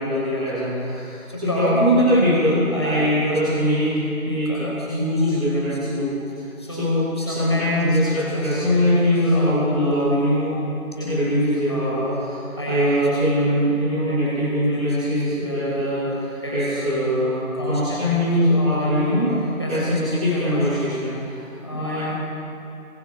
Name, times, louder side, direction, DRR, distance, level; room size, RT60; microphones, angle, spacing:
voice 1, 0.0-10.5 10.9-22.0, equal, ahead, -22 dB, 6.2 m, -22 dB
26.5 x 21.5 x 6.1 m, 2.8 s
figure-of-eight pair, 180°, 42 cm